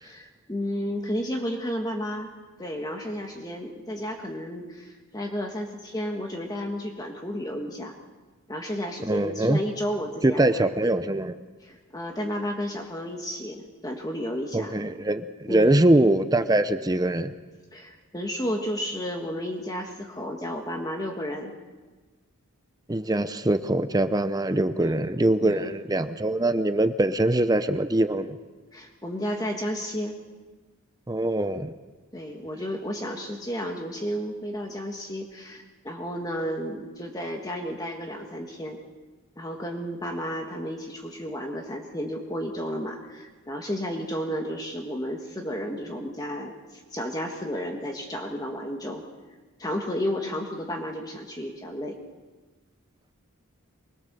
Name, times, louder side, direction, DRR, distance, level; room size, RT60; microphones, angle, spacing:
voice 1, 0.0-2.3 2.6-7.9 8.5-10.5 11.6-14.7 15.5-15.8 17.7-21.5 24.7-25.1 25.4-25.7 28.7-30.1 32.1-38.8 39.4-49.0 49.6-52.0, equal, 15° left, 2 dB, 1.6 m, -32 dB
voice 2, 9.1-9.6 10.2-11.4 14.5-17.3 22.9-28.4 31.1-31.7, right 1 dB, 15° right, 10 dB, 0.6 m, -23 dB
24.0 x 21.0 x 6.8 m, 1.3 s
head